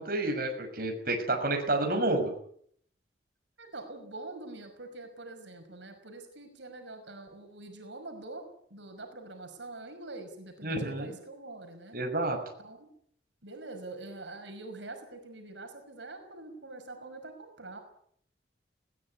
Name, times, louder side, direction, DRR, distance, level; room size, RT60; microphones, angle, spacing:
voice 1, 0.0-2.3 10.6-11.1 11.9-12.4, right 2 dB, 50° right, 3 dB, 6.2 m, -29 dB
voice 2, 3.6-12.0 12.6-12.9 13.4-17.8, right 2 dB, 85° right, 5 dB, 5.7 m, -45 dB
21.0 x 18.5 x 9.5 m, 0.65 s
head